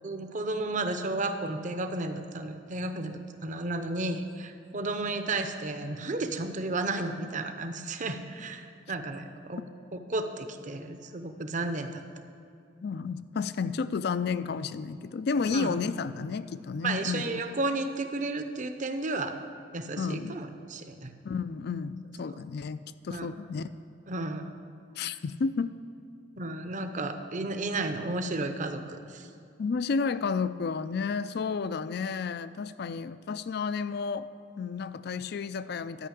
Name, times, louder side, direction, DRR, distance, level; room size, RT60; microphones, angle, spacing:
voice 1, 0.0-9.6 9.9-12.0 15.4-15.8 16.8-19.4 19.7-21.1 22.3-22.4 23.1-23.3 24.1-24.5 25.0-25.1 26.4-29.3, right 2 dB, 40° right, 7 dB, 0.8 m, -33 dB
voice 2, 12.8-17.4 20.0-20.4 21.2-23.7 25.0-25.7 29.6-34.3 34.6-36.1, left 5 dB, 60° left, 14 dB, 0.4 m, -31 dB
12.0 x 5.6 x 8.5 m, 2.6 s
head